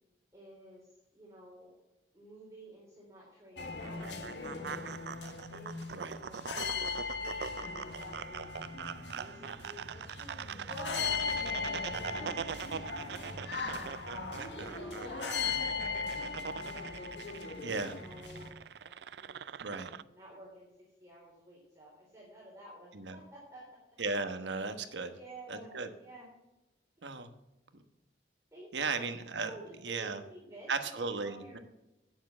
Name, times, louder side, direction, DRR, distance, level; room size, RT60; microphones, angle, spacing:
voice 1, 0.3-1.8 2.1-5.0 5.5-8.7 9.1-13.9 14.5-17.3 17.6-19.8 20.1-20.7 21.0-23.8 25.1-26.3 28.5-31.6, right 1 dB, 15° right, -6 dB, 3.3 m, -52 dB
sound 1, 3.6-18.5, left 4 dB, 85° left, 1.5 m, -38 dB
sound 2, 3.8-20.0, right 7 dB, 70° right, 0.4 m, -43 dB
voice 2, 17.6-17.9 19.6-19.9 22.9-23.2 24.0-25.2 25.5-25.9 27.0-27.3 28.7-29.5 29.8-30.2 30.7-31.6, right 4 dB, 85° right, 8 dB, 1.2 m, -35 dB
9.7 x 7.3 x 7.1 m, 0.94 s
head